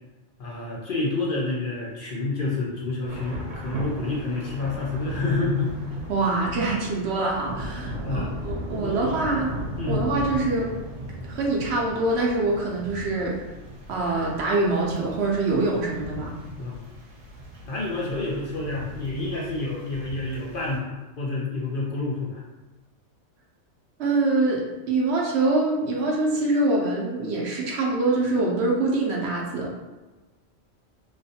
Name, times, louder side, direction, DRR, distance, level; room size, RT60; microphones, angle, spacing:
voice 1, 0.4-5.9 8.0-8.4 8.8-9.1 9.8-10.0 16.6-16.9 17.7-22.4, left 3 dB, 55° left, -4 dB, 0.6 m, -28 dB
Thunder / Rain, 3.0-20.8, equal, 90° right, 1.1 m, -37 dB
voice 2, 6.1-9.5 9.9-10.8 11.2-13.4 13.9-16.3 24.0-29.7, right 2 dB, 65° right, -2 dB, 0.8 m, -24 dB
3.1 x 2.5 x 2.6 m, 1.1 s
omnidirectional pair, 1.3 m